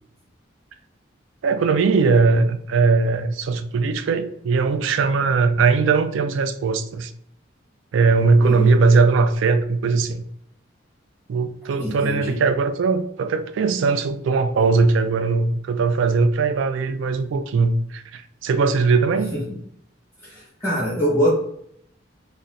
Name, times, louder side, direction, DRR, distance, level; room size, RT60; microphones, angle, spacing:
voice 1, 1.4-7.1 7.9-10.2 11.3-19.4, right 4 dB, 75° right, 10 dB, 0.3 m, -19 dB
voice 2, 8.4-8.7 11.8-12.4 19.3-19.4 20.2-21.3, equal, 10° right, -10 dB, 1.1 m, -23 dB
4.0 x 2.1 x 2.4 m, 0.71 s
head